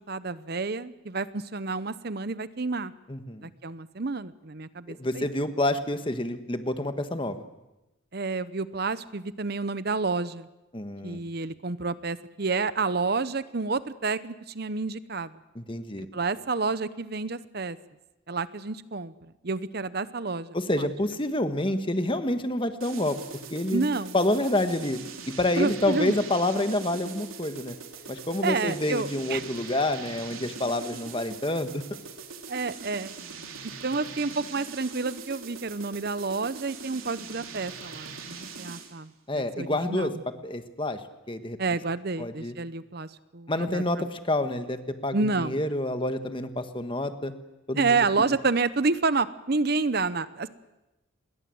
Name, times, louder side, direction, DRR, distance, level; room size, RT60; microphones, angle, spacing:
voice 1, 0.1-2.9 3.4-5.3 8.1-10.5 11.0-15.3 16.1-17.8 18.3-19.1 19.4-20.9 23.7-24.2 25.6-26.1 28.4-29.4 32.5-33.1 33.8-40.2 41.6-44.1 45.1-45.6 47.7-50.5, right 4 dB, 50° right, 15 dB, 0.8 m, -29 dB
voice 2, 3.1-3.5 4.9-7.4 10.7-11.2 15.5-16.1 20.5-23.2 23.5-23.9 24.1-25.0 25.3-27.7 28.1-31.8 39.3-40.1 40.4-41.0 41.3-41.6 42.2-42.5 43.5-47.3 47.7-48.0, left 1 dB, 25° left, 9 dB, 1.5 m, -28 dB
sound 1, 22.8-39.0, right 5 dB, 85° right, 3.4 m, -42 dB
28.5 x 21.5 x 7.9 m, 0.97 s
head